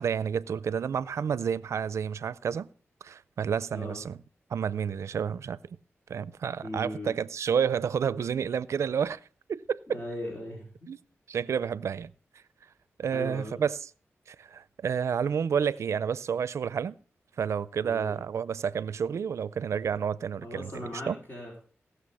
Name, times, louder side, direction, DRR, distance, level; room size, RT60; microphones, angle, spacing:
voice 1, 0.0-2.7 3.0-4.2 4.5-5.6 6.1-9.2 9.5-10.0 10.9-11.0 11.3-12.1 13.0-13.9 14.3-17.0 17.4-21.2, right 7 dB, 85° right, 0.5 m, -30 dB
voice 2, 6.6-7.1 9.9-10.7 13.1-13.6 17.8-18.2 20.4-21.6, left 1 dB, 45° left, 4.1 m, -38 dB
16.5 x 6.7 x 5.5 m
cardioid pair, 70°, 5 cm